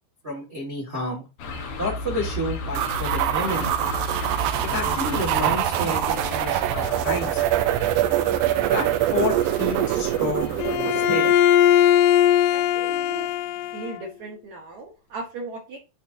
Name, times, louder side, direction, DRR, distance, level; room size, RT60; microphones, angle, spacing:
voice 1, 0.2-1.2 1.8-3.7 4.7-7.4 8.7-11.3, left 1 dB, 45° right, -3 dB, 0.8 m, -30 dB
sound 1, 1.4-10.8, left 3 dB, 70° left, 1.7 m, -33 dB
sound 2, 2.7-11.3, right 13 dB, 85° right, 2.7 m, -24 dB
Bowed string instrument, 10.6-14.0, left 11 dB, 90° left, 2.7 m, -19 dB
voice 2, 12.5-13.3 13.7-15.8, right 3 dB, 65° right, 1 dB, 1.9 m, -37 dB
11.0 x 4.2 x 2.6 m, 0.28 s
omnidirectional pair, 4.7 m